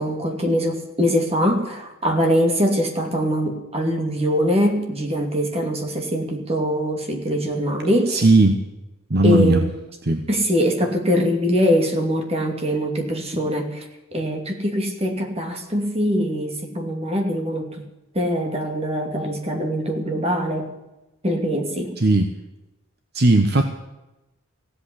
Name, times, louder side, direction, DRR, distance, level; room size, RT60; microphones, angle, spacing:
voice 1, 0.0-8.2 9.2-9.7 10.3-13.9 14.1-17.8 18.1-20.8 21.2-21.9, equal, 30° right, 3 dB, 2.7 m, -22 dB
voice 2, 8.1-8.6 9.1-9.7 10.0-10.3 22.0-22.3 23.1-23.6, right 2 dB, 50° right, 6 dB, 1.1 m, -17 dB
16.0 x 8.4 x 10.0 m, 1.0 s
head